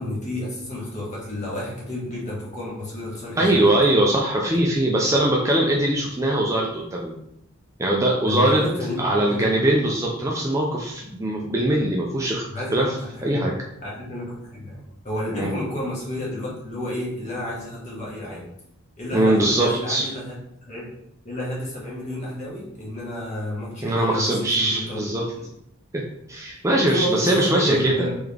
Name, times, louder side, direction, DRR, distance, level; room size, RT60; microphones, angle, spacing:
voice 1, 0.0-3.7 8.3-9.5 12.5-13.5 13.8-18.5 19.0-20.3 20.6-20.8 21.2-25.0 26.9-28.2, left 1 dB, 35° left, -6 dB, 1.4 m, -31 dB
voice 2, 3.4-7.1 7.8-8.6 9.0-12.4 12.7-13.0 13.2-13.5 15.4-15.5 19.1-20.0 23.8-25.3 25.9-28.1, right 1 dB, 15° right, -2 dB, 0.4 m, -21 dB
3.7 x 3.4 x 3.4 m, 0.78 s
head